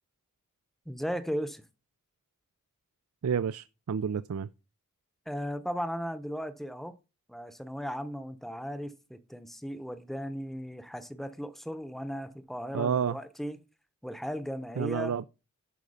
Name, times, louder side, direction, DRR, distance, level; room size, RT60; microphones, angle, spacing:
voice 1, 0.9-1.6 5.3-7.0 7.3-13.6 14.0-15.2, equal, ahead, 0.7 m, -36 dB
voice 2, 3.2-4.5 12.7-13.2 14.8-15.2, right 7 dB, 80° right, 0.4 m, -30 dB
11.5 x 5.1 x 5.4 m
head